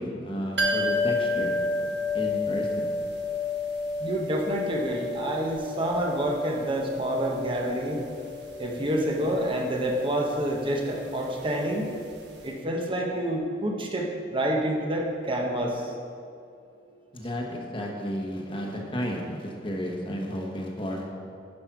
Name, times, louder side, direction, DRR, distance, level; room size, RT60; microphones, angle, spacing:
voice 1, 0.0-1.9 2.1-2.9 17.1-21.0, equal, 30° left, 0 dB, 1.2 m, -33 dB
sound 1, 0.6-12.2 12.4-12.5, left 2 dB, 60° right, 1.2 m, -31 dB
voice 2, 4.0-8.0 8.6-11.9 12.4-15.8, right 1 dB, 30° right, 0 dB, 0.9 m, -28 dB
10.5 x 5.3 x 6.0 m, 2.5 s
head